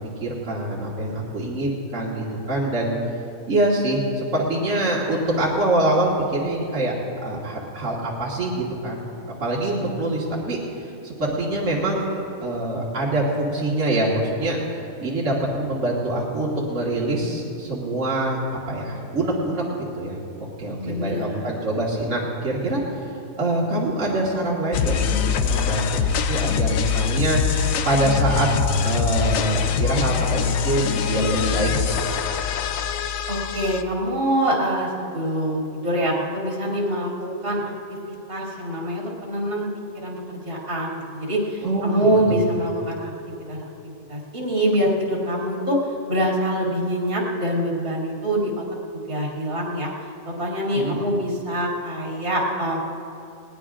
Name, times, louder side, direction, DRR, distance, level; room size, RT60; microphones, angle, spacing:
voice 1, 0.2-3.0 3.5-6.9 7.2-10.6 11.0-14.6 15.0-18.4 18.7-19.6 20.0-20.2 20.6-22.8 23.4-28.5 28.8-32.0 41.6-42.4 50.7-51.0, right 1 dB, 60° right, -5 dB, 2.1 m, -24 dB
voice 2, 20.8-21.5 33.3-37.6 37.9-38.0 38.3-43.1 43.5-45.8 46.1-48.6 48.9-49.9 50.3-52.8, equal, 90° right, -5 dB, 3.3 m, -25 dB
sound 1, 24.7-33.8, left 7 dB, 75° left, 1.0 m, -23 dB
20.0 x 19.0 x 2.5 m, 2.8 s
omnidirectional pair, 1.4 m